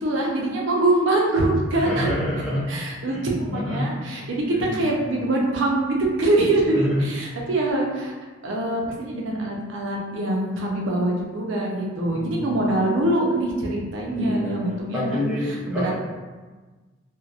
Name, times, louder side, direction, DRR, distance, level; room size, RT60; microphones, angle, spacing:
voice 1, 0.0-2.1 2.7-4.4 4.7-8.1 8.4-15.3 15.7-15.9, right 2 dB, 70° right, -2 dB, 0.5 m, -24 dB
voice 2, 1.7-2.7 3.1-3.2 3.5-4.0 4.5-4.8 6.7-7.1 12.1-12.5 14.0-14.6 14.9-15.9, left 1 dB, 5° right, -9 dB, 0.7 m, -28 dB
2.7 x 2.1 x 2.3 m, 1.3 s
head